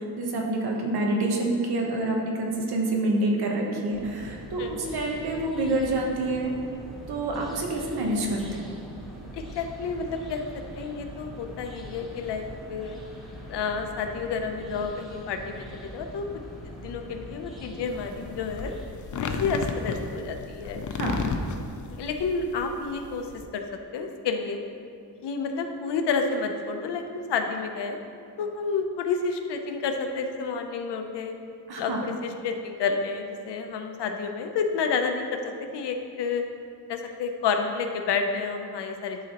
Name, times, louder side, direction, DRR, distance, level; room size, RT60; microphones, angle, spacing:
voice 1, 0.0-4.6 4.9-6.5 7.1-8.6 21.0-21.2 31.7-32.0, right 2 dB, 65° right, 0 dB, 1.1 m, -27 dB
sound 1, 3.9-18.9, equal, ahead, 1.1 m, -42 dB
voice 2, 4.6-4.9 9.3-13.0 13.5-16.3 16.8-18.7 19.2-20.8 21.9-23.6 23.9-24.6 25.2-28.0 28.4-31.4 31.8-36.4 36.9-39.2, left 5 dB, 80° left, 5 dB, 0.7 m, -30 dB
sound 2, 17.9-23.4, left 4 dB, 50° left, 0.5 m, -33 dB
11.0 x 4.1 x 2.9 m, 2.5 s
wide cardioid pair, 145°, 41 cm